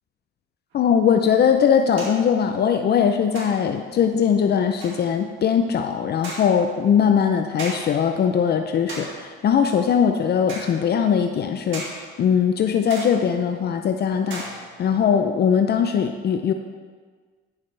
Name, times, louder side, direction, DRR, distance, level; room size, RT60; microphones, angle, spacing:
voice 1, 0.7-14.4 14.8-16.5, left 7 dB, 55° left, 6 dB, 0.5 m, -20 dB
sound 1, 0.7-0.8 2.0-2.3 3.3-3.8 4.8-5.1 6.2-6.7 7.6-8.1 8.9-9.3 10.5-10.8 11.7-12.1 12.9-13.4 14.3-14.9, right 2 dB, 80° right, 2.2 m, -36 dB
10.0 x 7.2 x 3.3 m, 1.5 s
cardioid pair, 90°, 20 cm